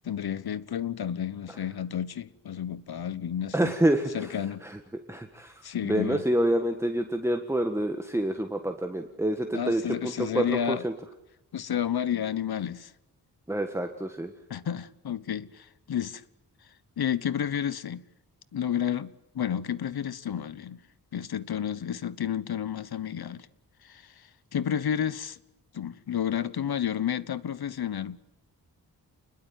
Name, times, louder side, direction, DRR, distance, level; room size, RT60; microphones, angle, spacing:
voice 1, 0.0-3.7 4.1-4.6 5.6-6.2 9.5-10.9 11.5-12.9 14.5-16.2 17.0-18.0 18.5-20.8 21.1-23.5 23.8-25.4 25.7-28.2, left 9 dB, 75° left, 1.2 m, -31 dB
voice 2, 3.5-4.3 4.6-4.8 5.1-10.9 13.5-14.3, right 1 dB, 5° right, 1.6 m, -27 dB
29.0 x 21.5 x 9.3 m
wide cardioid pair, 150°, 38 cm